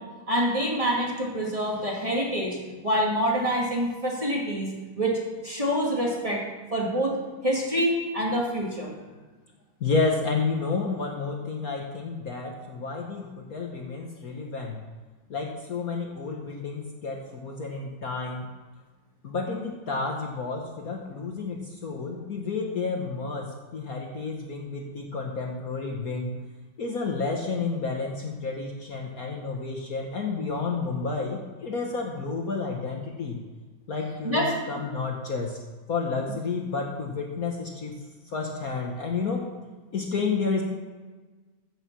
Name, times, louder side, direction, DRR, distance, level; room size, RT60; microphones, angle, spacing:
voice 1, 0.0-2.6 2.8-4.7 5.0-6.4 6.7-7.1 7.4-8.9 34.2-34.5, equal, 15° right, -3 dB, 2.4 m, -26 dB
voice 2, 9.8-14.8 15.3-18.4 19.2-26.3 26.8-33.4 33.9-35.6 35.9-37.9 38.2-39.4 39.9-40.6, left 4 dB, 50° left, 0 dB, 1.5 m, -30 dB
15.5 x 6.6 x 6.9 m, 1.3 s
omnidirectional pair, 2.2 m